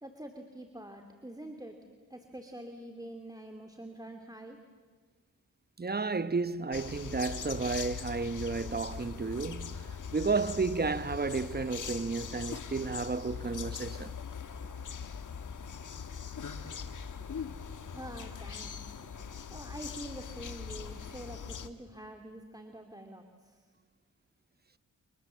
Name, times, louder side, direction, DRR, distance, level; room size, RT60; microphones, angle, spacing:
voice 1, 0.0-1.8 2.1-4.6 17.9-19.0 19.5-23.7, right 1 dB, 10° right, 2.5 m, -46 dB
voice 2, 5.8-14.1, right 4 dB, 30° right, 1.0 m, -32 dB
sound 1, 6.7-21.7, left 6 dB, 70° left, 1.4 m, -41 dB
29.5 x 25.5 x 7.5 m
cardioid pair, 60°, 32 cm